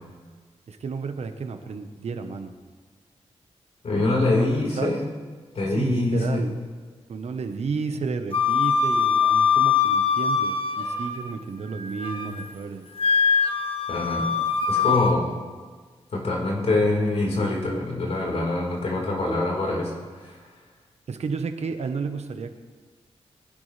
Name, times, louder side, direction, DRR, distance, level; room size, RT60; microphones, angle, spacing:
voice 1, 0.7-2.5 4.4-5.0 5.7-6.5 7.1-12.9 21.1-22.6, right 5 dB, 70° right, 7 dB, 1.2 m, -32 dB
voice 2, 3.8-5.0 5.5-6.5 7.9-8.0 13.9-14.3 14.7-15.3 16.1-20.4, left 2 dB, 70° left, -2 dB, 4.7 m, -24 dB
Wind instrument woodwind instrument, 8.3-11.3 11.7-12.4 13.0-15.2, left 6 dB, 55° left, 1.4 m, -22 dB
23.0 x 11.5 x 3.4 m, 1.5 s
wide cardioid pair, 85°, 11 cm